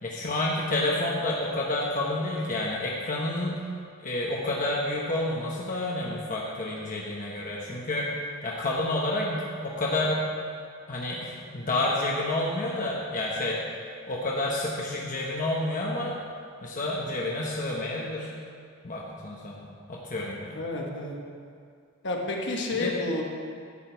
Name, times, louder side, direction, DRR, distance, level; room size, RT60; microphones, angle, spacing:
voice 1, 0.0-3.7 4.0-8.1 8.4-10.2 10.9-13.6 14.1-16.2 16.6-18.3 18.8-20.6 22.8-22.9, left 2 dB, 40° left, -3 dB, 1.1 m, -29 dB
voice 2, 20.5-21.2 22.0-23.2, left 2 dB, 60° left, 0 dB, 1.4 m, -30 dB
11.0 x 8.2 x 4.6 m, 2.3 s
head